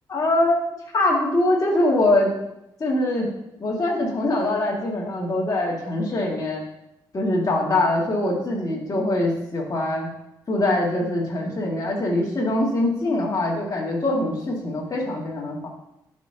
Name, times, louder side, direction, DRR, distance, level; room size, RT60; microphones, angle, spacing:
voice 1, 0.1-0.6 0.9-2.3 2.8-3.3 3.6-6.6 7.1-10.1 10.5-15.7, left 1 dB, 35° left, -4 dB, 2.3 m, -23 dB
11.5 x 5.3 x 2.9 m, 0.85 s
hypercardioid pair, 45°, 10 cm